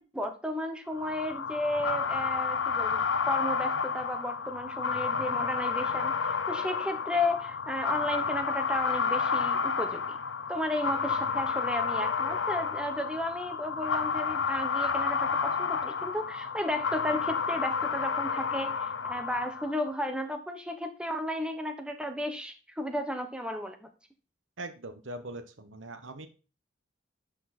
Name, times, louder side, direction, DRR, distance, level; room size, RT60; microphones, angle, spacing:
voice 1, 0.0-10.2 10.5-23.9, left 1 dB, 5° right, 6 dB, 1.1 m, -34 dB
sound 1, 1.0-19.9, left 5 dB, 80° left, 0.7 m, -30 dB
voice 2, 24.6-26.3, right 2 dB, 85° right, 9 dB, 1.2 m, -41 dB
12.5 x 5.0 x 4.2 m, 0.35 s
head